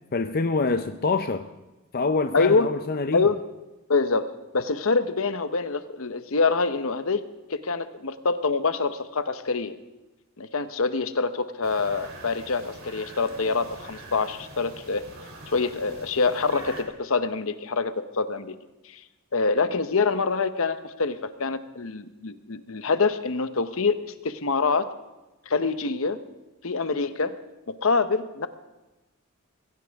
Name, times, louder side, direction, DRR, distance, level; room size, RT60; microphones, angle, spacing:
voice 1, 0.1-1.5 1.9-3.3, left 3 dB, 45° left, 8 dB, 0.6 m, -25 dB
voice 2, 2.3-2.7 3.1-3.4 3.9-7.2 7.5-9.7 10.4-15.0 15.5-18.5 18.8-19.0 19.3-24.9 25.5-26.2 26.6-27.4 27.8-28.5, left 4 dB, 65° left, 11 dB, 0.9 m, -25 dB
sound 1, 11.6-16.8, right 2 dB, 65° right, 3.3 m, -44 dB
22.5 x 15.5 x 3.5 m, 1.1 s
head